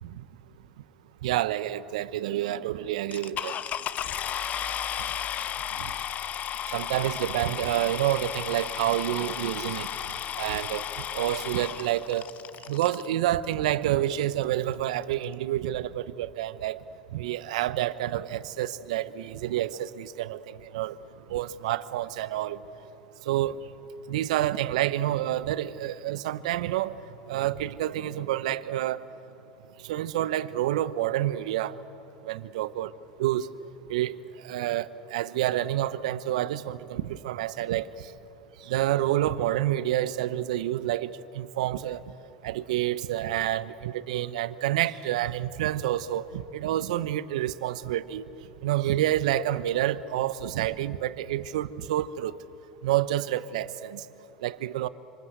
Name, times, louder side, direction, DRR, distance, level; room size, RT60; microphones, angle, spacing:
voice 1, 1.2-3.6 5.8-5.9 6.7-9.9 10.4-12.3 12.7-16.8 17.1-21.0 21.3-22.6 23.2-23.6 24.1-27.0 27.3-29.1 29.8-31.8 32.2-32.9 33.2-33.5 33.9-38.1 38.6-42.0 42.4-48.3 48.6-52.4 52.8-54.0 54.4-54.9, right 13 dB, 75° right, 0.9 m, -28 dB
sound 1, 3.1-13.1 13.8-13.9 14.4-14.5 14.7-15.0, left 10 dB, 40° left, 0.8 m, -34 dB
26.5 x 26.0 x 8.0 m
hypercardioid pair, 80°, 4 cm